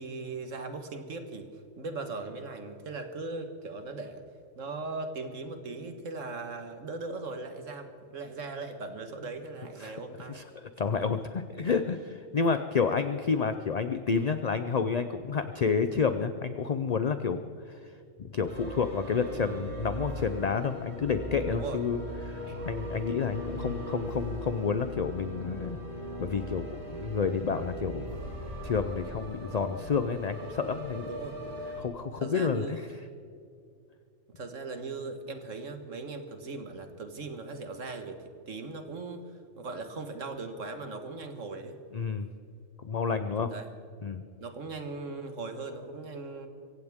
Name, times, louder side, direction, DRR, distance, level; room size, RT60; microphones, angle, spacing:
voice 1, 0.0-1.5 1.8-4.2 4.6-10.5 21.5-21.8 22.5-22.6 31.0-31.4 32.2-32.8 34.3-38.2 38.5-41.8 43.5-43.7 44.4-46.5, right 3 dB, 70° right, 7 dB, 1.8 m, -39 dB
voice 2, 10.3-17.8 18.2-22.0 22.2-25.8 26.2-28.2 28.6-31.1 31.8-32.8 41.9-42.3 42.8-43.5 44.0-44.2, left 5 dB, 50° left, 9 dB, 0.5 m, -30 dB
sound 1, 18.4-31.8, right 1 dB, 35° right, 3.7 m, -39 dB
25.0 x 16.0 x 3.6 m, 2.4 s
omnidirectional pair, 1.4 m